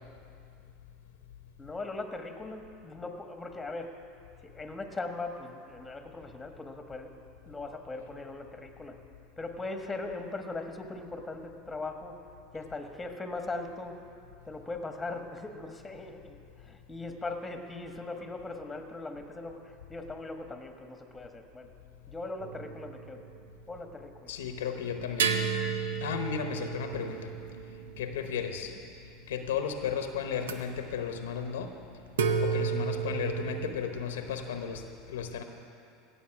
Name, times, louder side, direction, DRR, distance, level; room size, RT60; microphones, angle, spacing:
voice 1, 1.6-3.9 4.5-7.1 7.4-9.0 9.4-12.2 12.5-14.0 14.4-21.7 22.1-23.2 23.7-24.3, left 2 dB, 10° left, 5 dB, 1.3 m, -39 dB
sound 1, 22.4-23.6 25.2-28.9 30.4-30.6 32.1-33.7, right 6 dB, 90° right, 0.7 m, -32 dB
voice 2, 24.3-25.3 26.0-27.3 28.0-28.7 29.3-31.7 32.4-34.8 35.1-35.4, left 7 dB, 85° left, 6 dB, 0.9 m, -34 dB
17.0 x 7.0 x 5.9 m, 2.5 s
hypercardioid pair, 100°, 0 cm